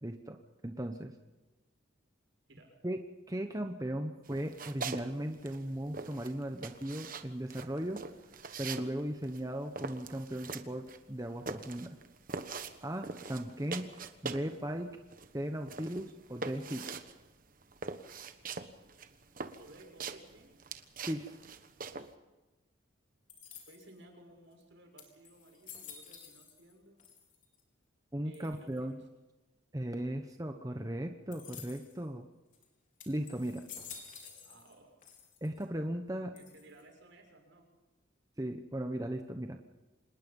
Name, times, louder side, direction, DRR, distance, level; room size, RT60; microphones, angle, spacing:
voice 1, 0.0-0.4 0.6-1.1 2.8-3.0 3.3-8.0 8.6-12.0 12.8-14.0 14.2-14.9 15.3-16.8 21.1-21.3 28.1-29.0 29.7-32.3 33.1-33.6 35.4-36.3 38.4-39.6, right 1 dB, 15° right, 5 dB, 1.0 m, -37 dB
voice 2, 2.5-2.8 19.6-20.5 23.7-27.0 28.2-29.0 34.2-34.9 36.3-37.7, right 1 dB, 70° right, 2 dB, 6.9 m, -57 dB
sound 1, 4.2-5.1 5.3-14.6 14.9-22.1, right 4 dB, 40° right, 1.3 m, -43 dB
sound 2, 23.3-24.0 24.6-24.7 25.0-26.7 27.0-27.6 28.3-28.8 31.3-32.0 32.5-32.6 33.0-34.8 35.0-35.6 36.4-36.9, left 7 dB, 40° left, 4.4 m, -51 dB
26.5 x 20.5 x 5.5 m, 1.1 s
head